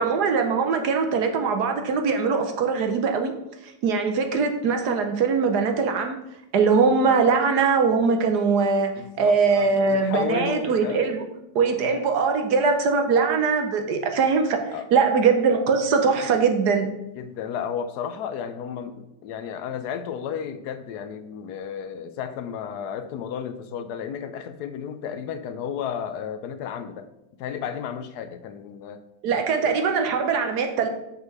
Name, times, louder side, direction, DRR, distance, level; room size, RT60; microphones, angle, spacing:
voice 1, 0.0-3.3 3.8-6.2 6.5-8.9 9.2-11.3 11.5-14.6 14.9-16.9 29.2-30.9, right 5 dB, 65° right, 5 dB, 1.3 m, -21 dB
voice 2, 8.9-11.0 11.8-12.0 14.7-14.9 17.1-27.1 27.4-29.0 29.3-29.8, left 8 dB, 70° left, 10 dB, 1.1 m, -33 dB
6.6 x 5.7 x 4.7 m, 0.86 s
omnidirectional pair, 2.0 m